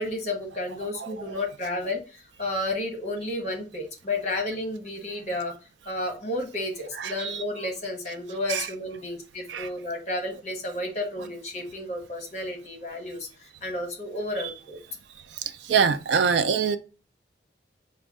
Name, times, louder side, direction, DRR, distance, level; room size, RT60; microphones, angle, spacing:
voice 1, 0.0-5.5 5.9-14.8, left 2 dB, 40° left, 1.1 m, -32 dB
voice 2, 7.0-7.4 8.5-8.6 9.5-9.7 15.7-16.8, right 6 dB, 75° right, 0.4 m, -23 dB
5.1 x 2.2 x 3.5 m
head